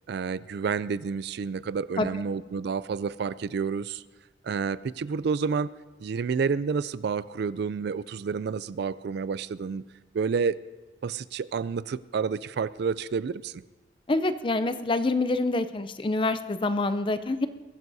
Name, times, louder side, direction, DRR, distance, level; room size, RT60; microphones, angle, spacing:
voice 1, 0.1-4.0 4.4-5.7 6.0-9.8 10.1-10.6 11.0-13.6, right 5 dB, 60° right, 17 dB, 0.3 m, -29 dB
voice 2, 14.1-17.5, left 2 dB, 25° left, 11 dB, 0.5 m, -26 dB
22.0 x 15.5 x 2.7 m, 1.2 s
head